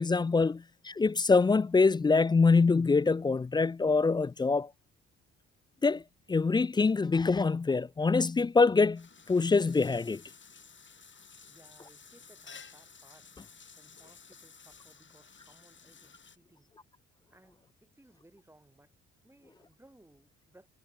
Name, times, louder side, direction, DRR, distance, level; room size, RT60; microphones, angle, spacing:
voice 1, 0.0-4.7 5.8-6.0 6.3-10.2, left 4 dB, 15° left, 0.3 m, -25 dB
sound 1, 8.9-16.4, left 5 dB, 40° left, 7.2 m, -54 dB
voice 2, 11.5-13.3 13.8-16.7 17.3-18.9 19.2-20.7, right 1 dB, 10° right, 7.7 m, -61 dB
cardioid pair, 90°, 30 cm